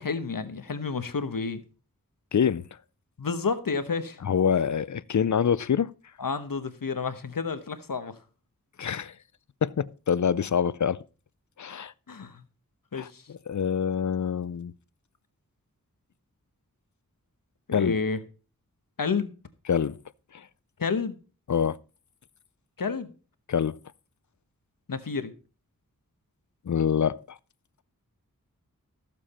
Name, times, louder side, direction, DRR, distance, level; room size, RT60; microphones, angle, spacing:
voice 1, 0.0-1.6 3.2-4.2 6.2-8.2 12.1-12.4 12.9-13.3 17.7-18.2 19.0-19.3 20.8-21.2 22.8-23.1 24.9-25.3, left 5 dB, 75° left, 1.1 m, -30 dB
voice 2, 2.3-2.7 4.2-5.9 8.8-9.1 9.6-11.0 11.6-11.9 12.9-13.1 13.5-14.7 17.7-18.0 19.7-20.0 20.3-20.5 21.5-21.8 23.5-23.8 26.7-27.4, left 7 dB, 55° left, 0.5 m, -25 dB
14.0 x 7.5 x 4.3 m
wide cardioid pair, 70°, 34 cm